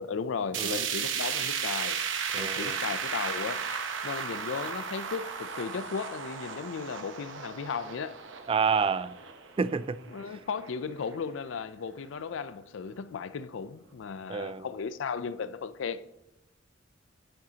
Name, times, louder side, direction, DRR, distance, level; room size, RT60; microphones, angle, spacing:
voice 1, 0.0-2.0 2.4-3.7 4.0-8.2 10.1-16.0, left 5 dB, 75° left, 0.4 m, -35 dB
sound 1, 0.5-10.7 11.1-11.2 11.6-11.7 12.5-12.6, right 6 dB, 75° right, 0.9 m, -35 dB
voice 2, 2.3-2.8 8.5-9.2 9.6-10.0 14.3-14.7, right 5 dB, 30° right, 0.3 m, -28 dB
9.9 x 9.1 x 2.8 m
head